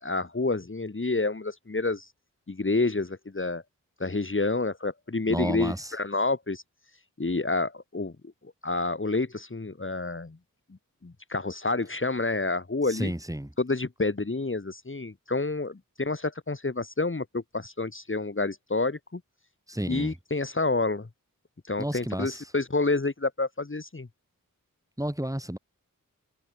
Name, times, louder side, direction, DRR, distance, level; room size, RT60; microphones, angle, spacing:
voice 1, 0.0-2.1 2.5-3.6 4.0-6.6 7.2-8.1 8.6-10.4 11.0-13.1 13.6-19.2 19.9-21.1 21.7-24.1, left 3 dB, 35° left, 2.8 m, -28 dB
voice 2, 5.3-5.9 12.9-13.5 19.7-20.1 21.8-22.4 25.0-25.6, right 1 dB, 10° right, 6.3 m, -31 dB
cardioid pair, 50°, 34 cm